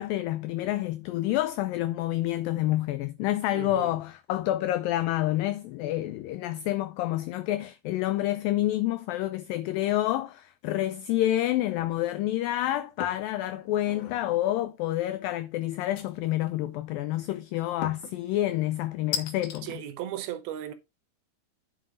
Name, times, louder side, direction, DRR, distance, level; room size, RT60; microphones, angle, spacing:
voice 1, 0.0-19.8, left 14 dB, 85° left, 2.0 m, -28 dB
voice 2, 3.5-3.9 19.6-20.7, right 11 dB, 75° right, 2.6 m, -36 dB
sound 1, 13.0-13.3 13.7-14.2 16.0-16.5 17.8-18.2 19.1-19.6, left 9 dB, 70° left, 1.9 m, -35 dB
9.9 x 5.7 x 3.8 m
omnidirectional pair, 4.6 m